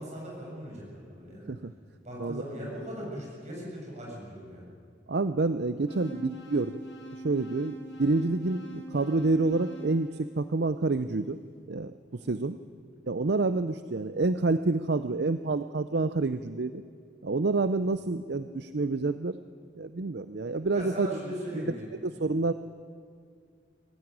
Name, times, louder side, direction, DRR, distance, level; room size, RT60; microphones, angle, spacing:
voice 1, 0.0-1.5 2.0-4.6 12.2-12.4 20.7-21.9, right 1 dB, 40° right, -3 dB, 7.7 m, -39 dB
voice 2, 5.1-6.8 7.2-11.4 11.7-12.6 13.1-16.8 17.2-19.4 19.8-21.1 22.0-22.5, right 3 dB, 60° right, 12 dB, 0.6 m, -28 dB
sound 1, 5.9-11.0, equal, 75° left, 5.7 m, -44 dB
23.0 x 15.0 x 9.8 m, 2.2 s
head